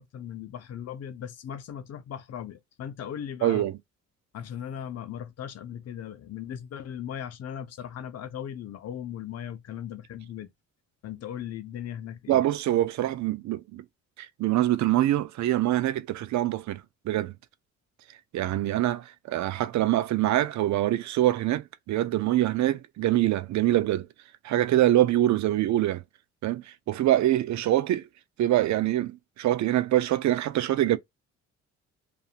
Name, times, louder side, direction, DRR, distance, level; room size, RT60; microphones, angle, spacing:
voice 1, 0.0-3.6 4.3-10.5 11.0-12.4, left 9 dB, 55° left, 0.6 m, -38 dB
voice 2, 3.4-3.7 12.3-13.8 14.2-16.8 17.1-17.3 18.3-24.1 24.4-26.0 26.4-28.1 28.4-31.0, right 14 dB, 65° right, 0.5 m, -24 dB
2.7 x 2.5 x 2.4 m
cardioid pair, 90°, 30 cm